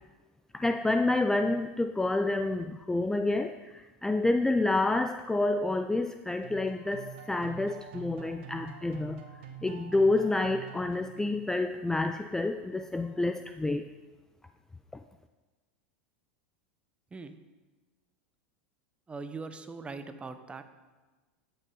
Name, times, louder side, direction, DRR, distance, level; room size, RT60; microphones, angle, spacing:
voice 1, 0.5-9.2 9.6-13.9, left 2 dB, 10° left, 8 dB, 0.4 m, -28 dB
sound 1, 6.4-11.6, right 9 dB, 70° right, 1.2 m, -46 dB
voice 2, 19.1-20.6, right 4 dB, 15° right, 9 dB, 0.8 m, -41 dB
13.0 x 6.8 x 3.8 m, 1.2 s
hypercardioid pair, 105°, 6 cm